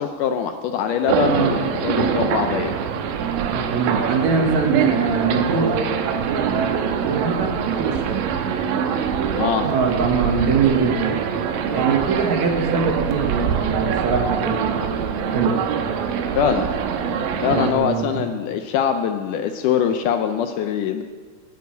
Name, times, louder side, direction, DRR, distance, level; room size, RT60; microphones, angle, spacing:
voice 1, 0.0-2.8 9.4-9.7 16.4-16.7 17.4-21.0, left 8 dB, 80° left, 7 dB, 1.9 m, -23 dB
sound 1, 1.1-17.7, right 7 dB, 85° right, 2.7 m, -24 dB
voice 2, 1.2-1.6 3.4-5.8 6.2-8.2 9.6-11.2 11.7-14.9 15.2-15.6 17.4-18.2, right 5 dB, 60° right, 2 dB, 2.3 m, -23 dB
10.5 x 8.5 x 9.2 m, 1.5 s
omnidirectional pair, 4.1 m